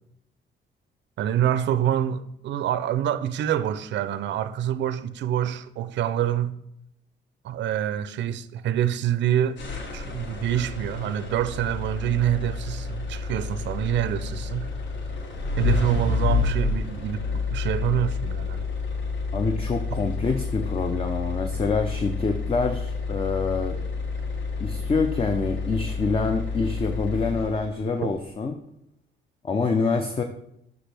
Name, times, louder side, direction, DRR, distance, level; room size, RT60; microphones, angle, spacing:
voice 1, 1.2-6.5 7.4-9.6 9.9-14.7 15.6-18.7 19.9-20.0, right 10 dB, 65° right, 0.4 m, -26 dB
sound 1, 9.6-27.8, left 4 dB, 65° left, 1.0 m, -29 dB
voice 2, 19.3-23.8 24.6-28.6 29.4-30.2, left 4 dB, 30° left, 0.5 m, -26 dB
5.9 x 5.3 x 3.3 m
cardioid pair, 90°, 20 cm